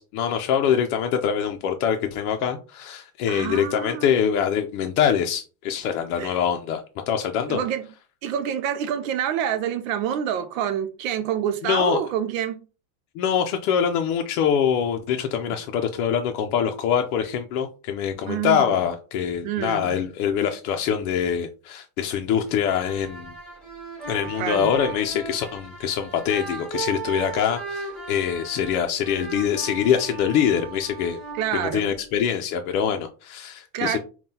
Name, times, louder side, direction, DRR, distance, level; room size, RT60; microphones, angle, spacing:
voice 1, 0.0-7.6 11.6-12.0 13.2-23.3 24.1-31.2 31.5-34.0, left 8 dB, 65° left, 0.6 m, -24 dB
voice 2, 3.3-4.1 6.2-6.4 7.5-7.8 8.2-12.6 18.3-18.8 19.4-20.0 24.4-24.7 31.3-31.9 33.7-34.0, right 9 dB, 60° right, 0.5 m, -27 dB
sound 1, 22.5-32.3, right 4 dB, ahead, 0.6 m, -37 dB
5.4 x 2.3 x 2.7 m
cardioid pair, 175°, 47 cm